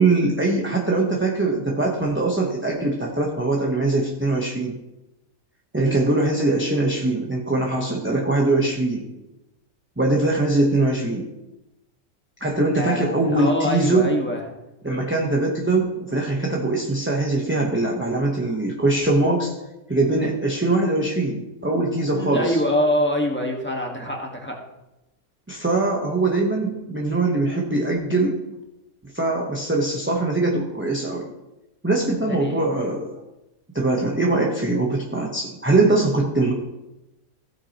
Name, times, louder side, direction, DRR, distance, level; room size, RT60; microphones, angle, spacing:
voice 1, 0.0-4.8 5.7-9.1 10.0-11.3 12.4-14.1 14.8-19.6 19.9-22.6 25.5-28.4 29.1-31.3 31.8-33.1 33.7-36.5, right 2 dB, 10° right, -2 dB, 0.9 m, -22 dB
voice 2, 12.7-14.4 22.1-24.6 32.3-32.9, left 1 dB, 10° left, 0 dB, 1.5 m, -25 dB
15.5 x 8.5 x 3.0 m, 0.98 s
omnidirectional pair, 1.5 m